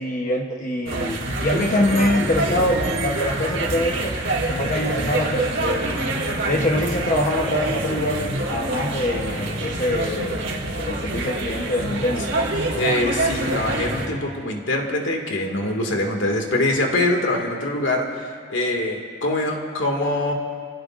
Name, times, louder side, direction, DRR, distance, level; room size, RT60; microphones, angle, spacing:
voice 1, 0.0-4.1 4.5-5.8 6.4-8.2 8.5-10.4 10.8-12.3, left 1 dB, 40° left, 0 dB, 1.0 m, -24 dB
sound 1, 0.9-14.1, right 2 dB, 85° right, 2.8 m, -26 dB
voice 2, 12.7-20.3, left 1 dB, 80° left, 2 dB, 2.1 m, -24 dB
27.0 x 17.5 x 2.5 m, 2.1 s
head